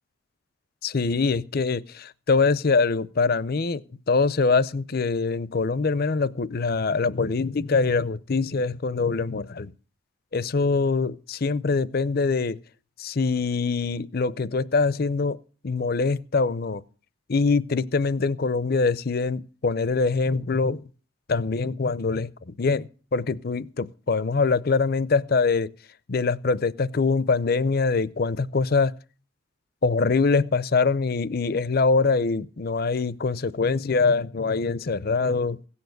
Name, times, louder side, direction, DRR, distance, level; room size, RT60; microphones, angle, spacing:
voice 1, 0.8-3.8 4.1-9.7 10.3-12.6 13.0-15.4 15.6-16.8 17.3-20.8 21.3-25.7 26.1-28.9 29.8-35.6, left 4 dB, 50° left, 0.6 m, -24 dB
16.5 x 7.2 x 7.8 m
head